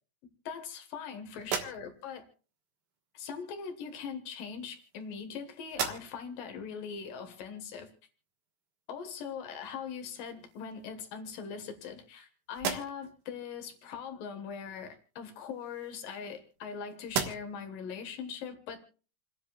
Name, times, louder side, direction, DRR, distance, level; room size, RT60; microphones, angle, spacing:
voice 1, 0.5-2.3 3.1-7.9 8.9-18.8, left 6 dB, 70° left, 5 dB, 2.2 m, -41 dB
sound 1, 1.4-2.2 3.3-3.5 4.4-5.3 5.6-6.4 6.9-7.0 9.6-9.7 10.2-10.9 11.4-12.2 12.5-13.2 15.2-16.7 17.0-17.7, right 6 dB, 85° right, 1.7 m, -38 dB
29.0 x 10.0 x 2.4 m, 0.38 s
omnidirectional pair, 6.0 m